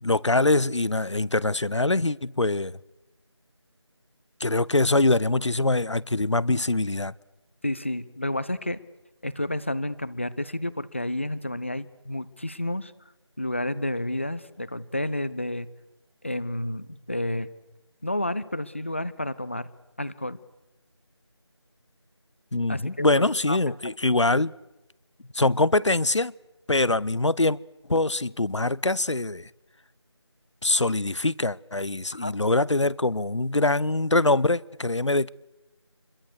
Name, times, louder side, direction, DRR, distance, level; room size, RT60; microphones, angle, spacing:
voice 1, 0.0-2.8 4.4-7.1 22.5-24.5 25.3-26.3 26.7-27.6 27.9-29.5 30.6-35.3, left 2 dB, 80° left, 0.8 m, -23 dB
voice 2, 7.6-8.8 9.2-12.9 13.4-15.7 16.2-17.5 18.0-19.7 20.0-20.4 22.7-23.8 32.1-32.3, left 1 dB, 25° left, 0.7 m, -30 dB
27.5 x 22.0 x 6.6 m
figure-of-eight pair, 170°, 15 cm